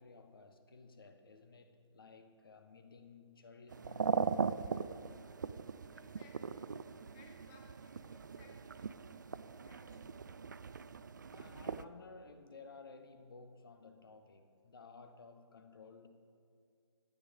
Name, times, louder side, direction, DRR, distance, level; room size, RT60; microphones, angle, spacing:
voice 1, 0.0-4.1 11.3-16.1, left 4 dB, 50° left, 8 dB, 1.1 m, -56 dB
sound 1, 3.7-11.8, right 5 dB, 40° right, 0.3 m, -40 dB
voice 2, 5.9-6.8 7.1-9.0 9.6-10.3, left 3 dB, 15° left, 1 dB, 1.2 m, -63 dB
12.0 x 9.0 x 5.0 m, 2.2 s
figure-of-eight pair, 145°, 15 cm